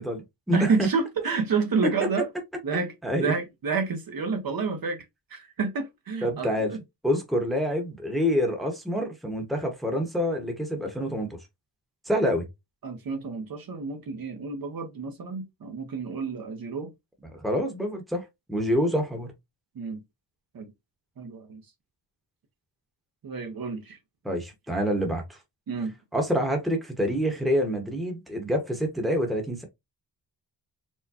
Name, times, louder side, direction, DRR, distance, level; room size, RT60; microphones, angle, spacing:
voice 1, 0.0-0.9 1.8-1.9 3.0-3.3 6.2-6.7 7.0-11.3 12.1-12.5 17.4-19.3 24.2-25.4 26.1-29.6, equal, ahead, 0.9 m, -27 dB
voice 2, 0.5-2.3 2.6-5.0 5.3-6.8 12.8-16.9 19.7-20.0 20.5-20.7 21.2-21.6 23.2-24.0 25.7-25.9, right 4 dB, 50° right, 0.8 m, -29 dB
4.5 x 2.1 x 2.8 m
wide cardioid pair, 135°, 44 cm